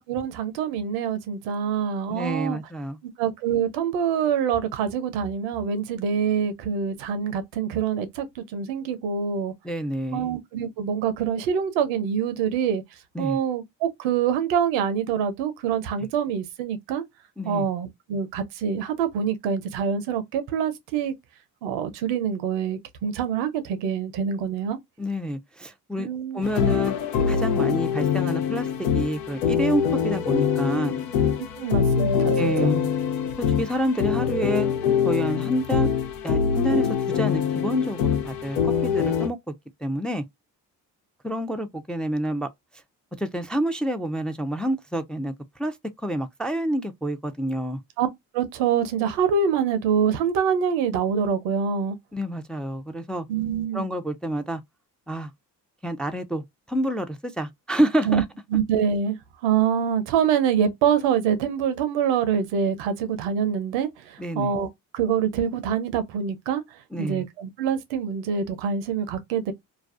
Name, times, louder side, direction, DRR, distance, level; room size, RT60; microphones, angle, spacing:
voice 1, 0.0-2.6 3.2-9.5 10.1-12.8 13.2-17.0 17.4-21.1 21.6-24.8 26.0-26.5 31.6-32.7 48.0-48.1 48.3-52.0 53.3-53.8 58.0-58.2 58.5-59.2 59.4-64.7 64.9-66.6 67.0-69.5, right 7 dB, 90° right, 0.6 m, -25 dB
voice 2, 2.1-3.0 9.6-10.3 13.1-13.4 17.4-17.7 25.0-26.1 26.3-26.9 27.3-31.0 32.4-32.9 33.4-34.7 35.0-35.9 36.2-36.9 37.1-39.4 39.8-40.2 41.2-42.5 43.2-45.3 45.6-47.8 52.1-53.3 53.7-54.6 55.1-55.3 55.8-58.2 64.2-64.5 66.9-67.3, equal, ahead, 0.4 m, -28 dB
sound 1, 26.4-39.3, left 7 dB, 85° left, 0.6 m, -24 dB
2.4 x 2.3 x 2.3 m
supercardioid pair, 50°, 44 cm